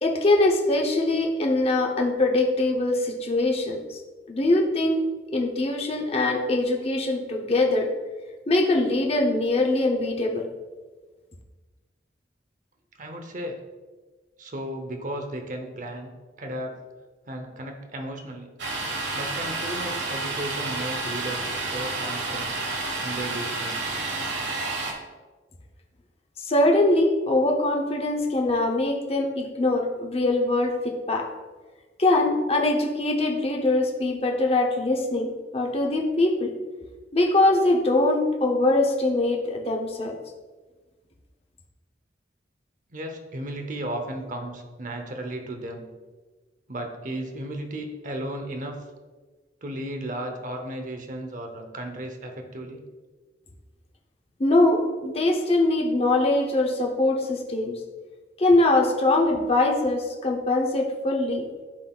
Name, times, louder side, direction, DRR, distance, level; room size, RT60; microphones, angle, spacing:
voice 1, 0.0-4.0 4.3-5.1 5.3-7.9 8.5-10.4 26.4-31.3 32.0-36.5 37.1-40.1 54.4-57.8 58.4-61.4, left 2 dB, 35° left, 1 dB, 0.7 m, -22 dB
voice 2, 13.0-13.6 14.4-16.1 16.4-16.8 17.3-18.5 19.1-22.6 23.0-23.8 42.9-45.9 46.7-48.8 49.6-52.8, right 1 dB, 45° right, 4 dB, 0.8 m, -34 dB
Domestic sounds home sounds, 18.6-24.9, right 3 dB, 85° right, 1.1 m, -30 dB
11.5 x 4.0 x 2.3 m, 1.3 s
head